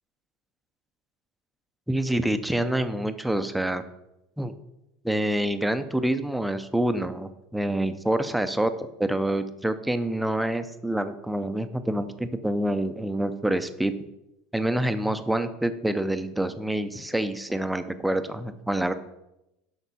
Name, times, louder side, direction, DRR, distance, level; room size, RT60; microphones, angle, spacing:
voice 1, 1.9-3.8 4.4-4.5 5.0-13.9 14.5-18.9, right 1 dB, 5° right, 9 dB, 0.5 m, -27 dB
8.2 x 5.9 x 4.2 m, 0.89 s
supercardioid pair, 130°, 0 cm